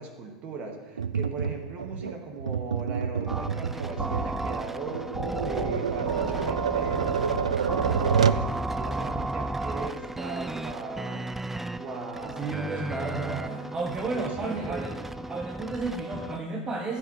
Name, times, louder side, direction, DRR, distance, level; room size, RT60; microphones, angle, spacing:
voice 1, 0.0-7.2 7.8-11.3 11.8-13.7 14.1-14.9, right 4 dB, 45° right, 3 dB, 2.1 m, -38 dB
Tap, 1.0-8.5, right 7 dB, 85° right, 0.3 m, -28 dB
sound 1, 3.3-16.4, right 2 dB, 10° right, 0.4 m, -34 dB
voice 2, 12.2-14.9 15.3-17.0, right 3 dB, 25° right, 0 dB, 1.5 m, -32 dB
15.0 x 8.2 x 3.4 m, 1.4 s
hypercardioid pair, 85°, 3 cm